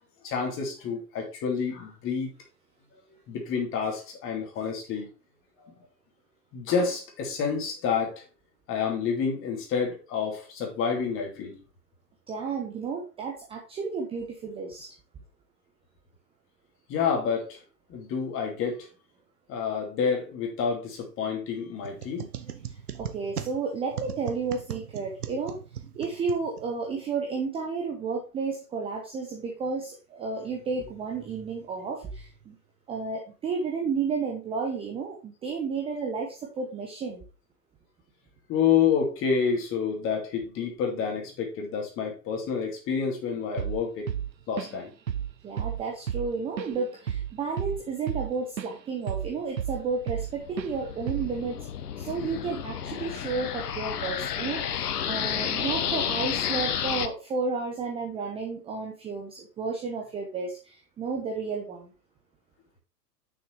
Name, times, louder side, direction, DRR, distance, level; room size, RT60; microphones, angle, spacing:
voice 1, 0.2-2.3 3.1-5.1 5.6-5.7 6.5-8.1 8.7-11.5 16.9-17.6 17.9-18.9 19.5-22.3 38.5-44.1 44.5-44.9, left 6 dB, 25° left, 1 dB, 2.4 m, -28 dB
voice 2, 12.3-14.9 23.0-25.6 25.9-32.6 32.9-37.2 45.4-51.7 52.0-61.9, right 4 dB, 10° right, 0 dB, 0.8 m, -32 dB
sound 1, 21.8-26.9, right 9 dB, 65° right, 0.9 m, -39 dB
Drum kit / Drum, 43.6-43.8 44.1-44.8 45.1-45.3 45.6-48.7 49.1-50.3 50.6-50.8 51.1-51.4, right 9 dB, 85° right, 0.6 m, -32 dB
sound 2, 49.7-57.1, left 8 dB, 65° left, 0.9 m, -31 dB
6.5 x 5.9 x 4.5 m, 0.33 s
figure-of-eight pair, 110°, 49 cm